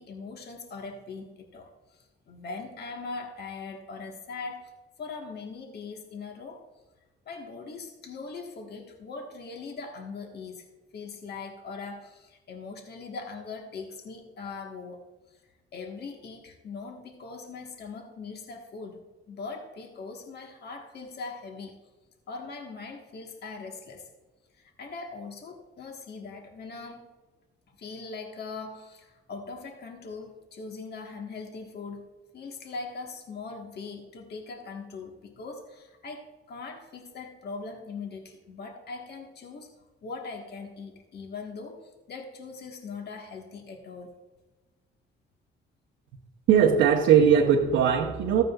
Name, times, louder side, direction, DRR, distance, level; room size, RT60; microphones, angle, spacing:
voice 1, 0.0-4.7 5.0-6.6 7.2-10.7 10.9-15.0 15.3-15.4 15.7-19.0 19.3-21.7 22.3-24.1 24.6-27.1 27.7-32.1 32.3-39.7 40.0-44.1, left 4 dB, 55° left, 3 dB, 1.4 m, -41 dB
voice 2, 46.5-48.4, right 8 dB, 85° right, 0 dB, 0.9 m, -20 dB
14.5 x 9.1 x 2.4 m, 1.2 s
cardioid pair, 90°, 20 cm